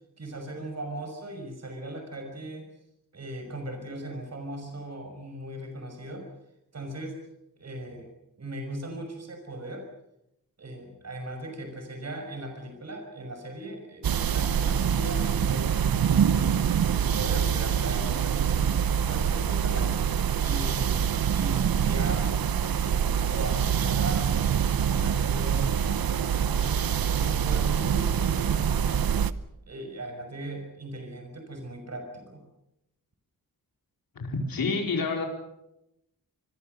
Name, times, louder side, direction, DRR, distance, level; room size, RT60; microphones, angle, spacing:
voice 1, 0.2-2.7 3.1-6.3 6.7-7.2 7.6-8.1 8.4-9.9 10.6-15.8 16.3-19.9 20.3-22.3 22.8-26.9 27.1-29.2 29.7-32.4, right 1 dB, 45° right, 5 dB, 5.6 m, -38 dB
sound 1, 14.0-29.3, right 8 dB, 80° right, 0.9 m, -25 dB
voice 2, 34.2-35.3, left 4 dB, 75° left, 2 dB, 4.5 m, -28 dB
25.5 x 21.5 x 6.7 m, 0.84 s
wide cardioid pair, 125°, 35 cm